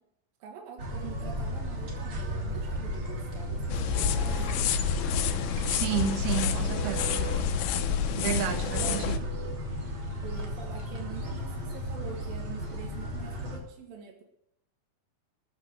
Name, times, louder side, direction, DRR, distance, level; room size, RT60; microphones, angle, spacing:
voice 1, 0.4-4.7 8.6-9.2 10.2-14.2, right 6 dB, 70° right, 3.5 m, -45 dB
sound 1, 0.8-13.6, equal, 35° right, 3.6 m, -34 dB
sound 2, 3.7-9.2, left 9 dB, 85° left, 2.8 m, -29 dB
sound 3, 3.9-9.5, right 3 dB, 30° left, 1.4 m, -43 dB
voice 2, 5.7-7.2 8.2-9.2, right 13 dB, 90° right, 3.2 m, -31 dB
14.0 x 9.5 x 7.5 m
omnidirectional pair, 4.3 m